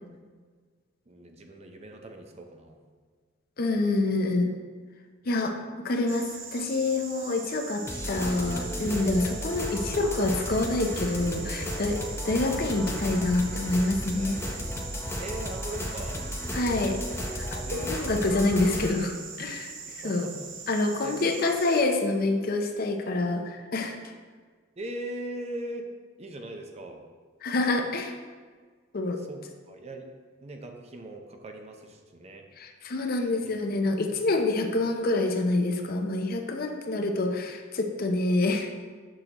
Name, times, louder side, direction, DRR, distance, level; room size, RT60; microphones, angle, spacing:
voice 1, 1.1-2.8 8.1-8.2 15.2-16.3 17.7-18.5 19.8-20.5 21.0-21.2 24.8-25.9 26.2-27.0 29.2-30.1 30.4-32.4 33.4-33.9, right 1 dB, 35° right, 4 dB, 0.6 m, -40 dB
voice 2, 3.6-4.5 5.3-12.0 12.2-14.4 16.5-17.0 17.4-19.7 20.0-20.3 20.7-24.0 27.4-28.1 28.9-29.2 32.6-38.7, left 2 dB, 50° left, 4 dB, 0.6 m, -27 dB
sound 1, 6.1-21.8, right 5 dB, 80° right, 0.8 m, -42 dB
sound 2, 7.9-18.9, left 1 dB, 15° left, 0.7 m, -34 dB
6.5 x 6.2 x 2.9 m, 1.5 s
head